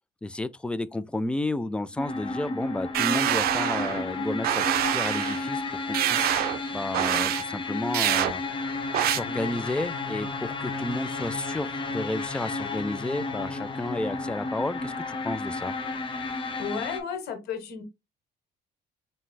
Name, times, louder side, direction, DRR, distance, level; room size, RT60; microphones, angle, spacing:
voice 1, 0.2-5.6 5.9-6.3 6.7-8.4 9.0-15.7, left 2 dB, 5° left, 0.3 m, -32 dB
sound 1, 2.0-17.0, left 3 dB, 30° left, 1.0 m, -32 dB
sound 2, 2.9-4.0 4.4-5.4 5.9-6.6 6.9-7.4 7.9-8.3 8.9-9.2, right 12 dB, 65° right, 0.5 m, -25 dB
voice 2, 16.6-17.8, left 6 dB, 75° left, 1.3 m, -33 dB
4.3 x 4.2 x 2.2 m
cardioid pair, 110°, 17 cm